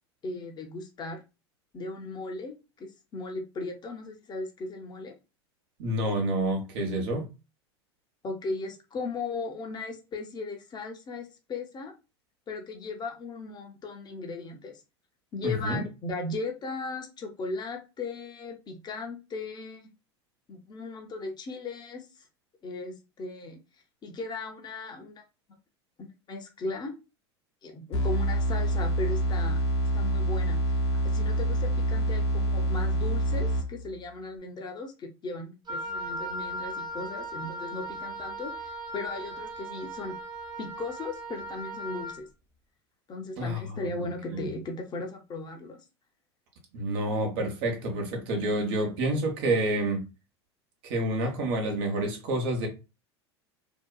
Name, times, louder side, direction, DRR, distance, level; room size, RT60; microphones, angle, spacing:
voice 1, 0.2-1.2 1.7-5.1 8.2-11.9 12.5-14.8 15.3-19.9 20.5-22.3 22.6-23.6 24.0-25.2 26.0-26.9 27.6-29.6 29.9-30.6 31.0-40.2 40.6-42.3 43.1-45.8, left 3 dB, 30° left, 0.7 m, -37 dB
voice 2, 5.8-7.3 15.4-15.9 43.4-43.8 44.3-44.5 46.7-50.1 50.8-52.7, right 1 dB, 65° right, 0.9 m, -28 dB
sound 1, 27.9-34.0, right 1 dB, 75° left, 1.0 m, -26 dB
Wind instrument woodwind instrument, 35.7-42.2, right 1 dB, 30° right, 0.7 m, -37 dB
2.7 x 2.2 x 2.2 m
hypercardioid pair, 85°, 14 cm